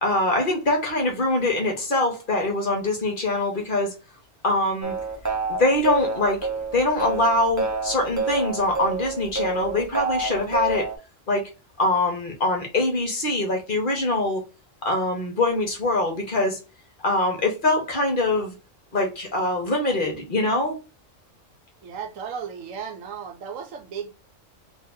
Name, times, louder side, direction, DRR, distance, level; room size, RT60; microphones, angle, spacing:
voice 1, 0.0-3.9 4.4-4.9 5.5-6.4 6.7-10.9 11.3-11.4 11.8-14.4 14.8-16.6 17.0-18.5 18.9-20.8, left 2 dB, 45° left, 1.0 m, -23 dB
sound 1, 4.8-11.0, right 4 dB, 25° right, 0.4 m, -28 dB
voice 2, 21.8-24.1, right 7 dB, 85° right, 1.1 m, -35 dB
2.8 x 2.7 x 3.5 m
omnidirectional pair, 1.3 m